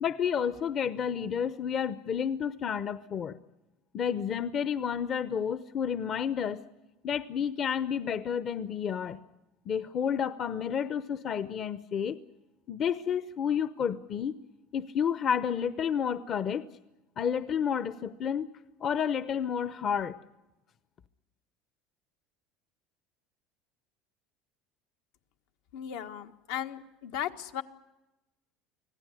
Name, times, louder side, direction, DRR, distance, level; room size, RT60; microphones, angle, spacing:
voice 1, 0.0-3.4 3.9-6.6 7.0-9.2 9.7-12.2 12.7-14.3 14.7-16.7 17.2-18.5 18.8-20.2, left 8 dB, 40° left, 13 dB, 0.8 m, -30 dB
voice 2, 25.7-27.6, left 10 dB, 75° left, 7 dB, 1.6 m, -36 dB
25.5 x 16.5 x 9.9 m, 0.99 s
supercardioid pair, 130°, 0 cm